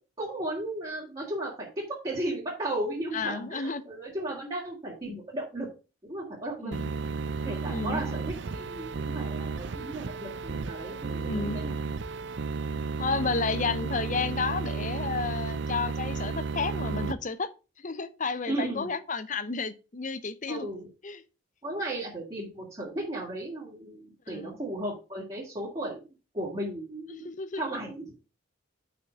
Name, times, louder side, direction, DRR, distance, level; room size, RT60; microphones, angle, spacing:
voice 1, 0.2-5.7 6.0-6.7 7.4-11.7 18.4-18.9 20.5-20.9 21.6-26.0 26.3-27.3 27.6-28.2, right 1 dB, 25° right, 2.6 m, -35 dB
voice 2, 3.1-3.9 6.6-6.9 7.7-8.0 11.2-11.6 13.0-17.5 17.8-20.7 21.0-21.2 24.3-24.5 27.1-27.6, left 4 dB, 40° left, 0.7 m, -32 dB
sound 1, 6.7-17.1, right 4 dB, 60° right, 0.5 m, -33 dB
6.0 x 6.0 x 6.1 m
head